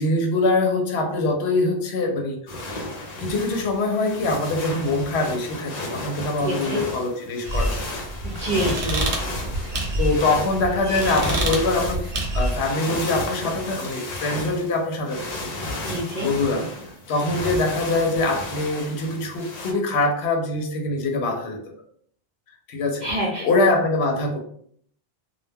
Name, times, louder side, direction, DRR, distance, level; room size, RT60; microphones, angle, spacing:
voice 1, 0.0-2.6 3.2-8.0 10.0-12.1 12.3-15.9 16.2-16.7 17.1-21.6 22.7-23.1 23.4-24.4, left 2 dB, 75° left, 3 dB, 0.8 m, -24 dB
sound 1, 2.5-19.7, left 1 dB, 50° left, 0.5 m, -33 dB
voice 2, 6.4-6.8 8.2-9.2 15.9-16.3 23.0-23.5, right 1 dB, 50° right, -2 dB, 0.6 m, -27 dB
sound 2, 7.4-12.7, right 1 dB, 75° right, 0.9 m, -27 dB
2.2 x 2.1 x 3.2 m, 0.62 s
omnidirectional pair, 1.1 m